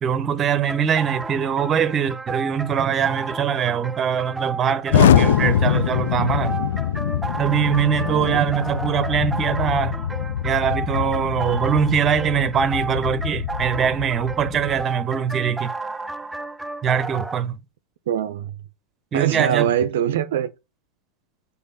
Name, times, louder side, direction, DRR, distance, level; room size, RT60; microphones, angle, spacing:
voice 1, 0.0-6.6 7.4-10.0 10.4-15.7 16.8-17.6 19.1-19.7, right 8 dB, 25° right, 0.7 m, -22 dB
sound 1, 0.7-17.4, right 3 dB, 5° right, 0.4 m, -33 dB
Explosion, 4.9-14.8, left 9 dB, 60° left, 0.4 m, -23 dB
voice 2, 8.0-8.5 18.1-18.5 19.1-20.5, right 10 dB, 60° right, 0.5 m, -23 dB
5.2 x 4.2 x 5.5 m
figure-of-eight pair, 90°, 0 cm